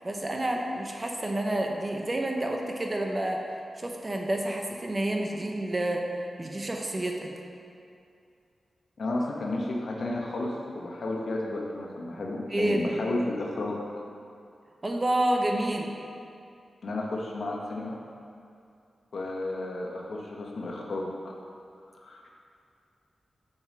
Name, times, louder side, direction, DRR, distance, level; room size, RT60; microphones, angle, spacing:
voice 1, 0.0-3.4 3.8-6.1 6.4-7.3 12.5-12.8 14.8-15.9, right 1 dB, 25° right, 1 dB, 0.8 m, -29 dB
voice 2, 9.0-13.8 16.8-18.0 19.1-21.3 21.9-22.3, left 2 dB, 65° left, -1 dB, 1.1 m, -32 dB
6.9 x 5.3 x 6.2 m, 2.5 s
wide cardioid pair, 115°, 0 cm